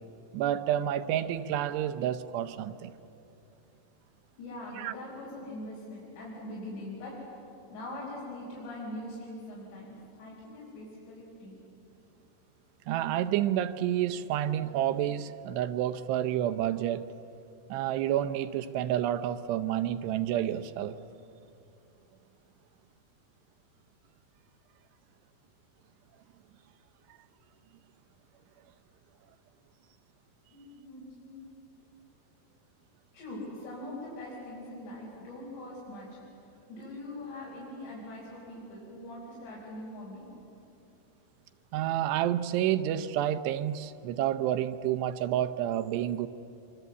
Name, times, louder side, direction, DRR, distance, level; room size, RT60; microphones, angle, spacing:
voice 1, 0.3-2.9 4.8-4.9 12.9-17.1 17.7-21.0 41.7-46.3, right 11 dB, 85° right, 2.9 m, -29 dB
voice 2, 4.4-7.1 7.7-11.5 30.5-31.4 33.1-36.1 36.7-40.2, left 1 dB, 90° left, 7.2 m, -42 dB
25.5 x 24.5 x 8.2 m
omnidirectional pair, 4.8 m